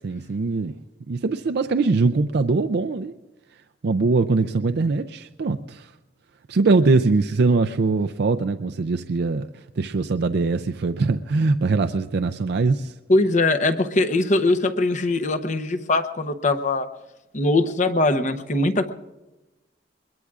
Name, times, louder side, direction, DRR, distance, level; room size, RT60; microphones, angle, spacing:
voice 1, 0.0-0.7 1.1-3.1 3.8-5.9 6.5-9.5 9.8-12.9, right 3 dB, 65° right, 0.5 m, -22 dB
voice 2, 13.1-16.9 17.3-18.9, left 2 dB, 45° left, 0.8 m, -21 dB
22.0 x 21.5 x 2.5 m
head